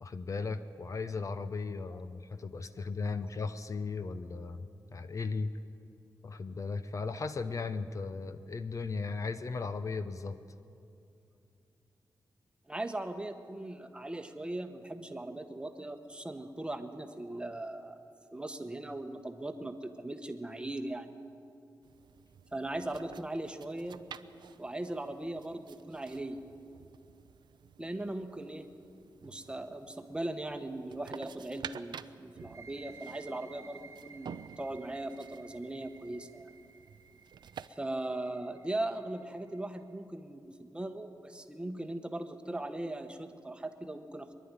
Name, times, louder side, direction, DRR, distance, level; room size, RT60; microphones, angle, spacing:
voice 1, 0.0-5.5 6.2-10.4, left 4 dB, 45° left, 10 dB, 0.7 m, -36 dB
voice 2, 12.7-18.0 18.3-21.1 22.5-24.0 24.6-26.4 27.8-28.7 29.2-36.5 37.7-44.3, right 1 dB, 15° right, 7 dB, 1.1 m, -39 dB
sound 1, 21.8-37.7, right 7 dB, 80° right, 0.5 m, -51 dB
sound 2, 32.4-39.8, right 5 dB, 40° right, 1.0 m, -55 dB
24.0 x 11.0 x 9.7 m, 2.6 s
wide cardioid pair, 140°, 8 cm